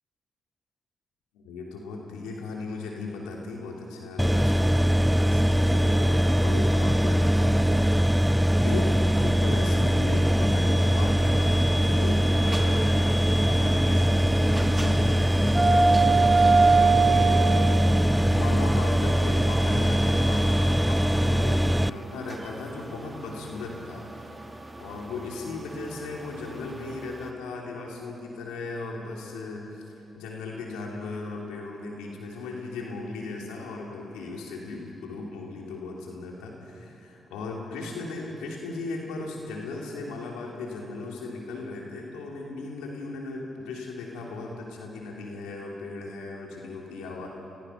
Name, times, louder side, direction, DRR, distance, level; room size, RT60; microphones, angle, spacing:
voice 1, 1.3-8.3 8.6-13.0 13.4-17.7 18.3-24.0 24.8-29.8 30.1-47.3, left 3 dB, 85° left, -1 dB, 3.2 m, -37 dB
sound 1, 4.2-21.9, equal, 5° right, 0.5 m, -22 dB
sound 2, 12.4-27.2, right 4 dB, 25° right, 2.9 m, -26 dB
29.0 x 22.0 x 5.8 m, 3.0 s
hypercardioid pair, 45°, 0 cm